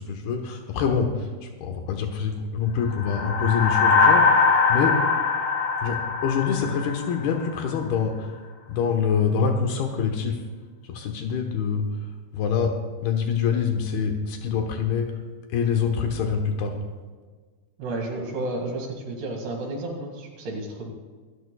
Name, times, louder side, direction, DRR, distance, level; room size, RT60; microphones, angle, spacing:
voice 1, 0.0-5.0 5.8-8.3 8.7-10.4 10.8-11.8 12.3-12.7 13.0-15.1 15.5-16.8, left 6 dB, 80° left, 3 dB, 3.1 m, -25 dB
sound 1, 2.9-7.5, left 4 dB, 40° left, 1.1 m, -21 dB
voice 2, 17.8-20.9, right 2 dB, 90° right, -1 dB, 4.2 m, -32 dB
26.0 x 13.0 x 2.3 m, 1.5 s
omnidirectional pair, 4.5 m